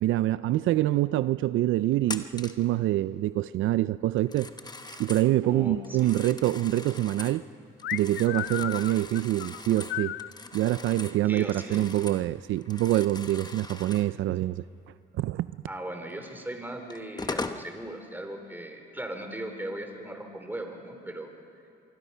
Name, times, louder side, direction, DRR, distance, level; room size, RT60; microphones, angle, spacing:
voice 1, 0.0-4.5 5.0-7.5 7.9-10.2 10.5-14.6 15.2-15.5, right 15 dB, 80° right, 15 dB, 0.5 m, -25 dB
Telephone, 2.0-2.7 4.2-5.3 5.8-7.4 7.8-12.3 12.6-14.1 16.2-16.3 16.9-17.7, left 3 dB, 20° left, 1.0 m, -40 dB
voice 2, 5.4-6.3 11.3-11.9 15.7-21.3, right 1 dB, 10° right, 4 dB, 3.6 m, -38 dB
sound 1, 7.8-10.3, left 13 dB, 65° left, 0.5 m, -34 dB
24.5 x 24.0 x 5.6 m, 2.4 s
cardioid pair, 90°, 20 cm